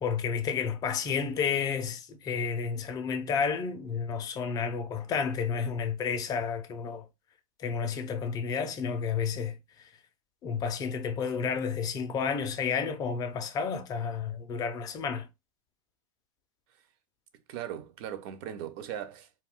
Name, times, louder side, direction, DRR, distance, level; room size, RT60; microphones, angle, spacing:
voice 1, 0.0-7.1 7.6-9.6 10.4-15.3, left 6 dB, 20° left, 0.4 m, -31 dB
voice 2, 17.5-19.4, right 10 dB, 45° right, 0.5 m, -39 dB
2.2 x 2.2 x 3.5 m
hypercardioid pair, 130°, 17 cm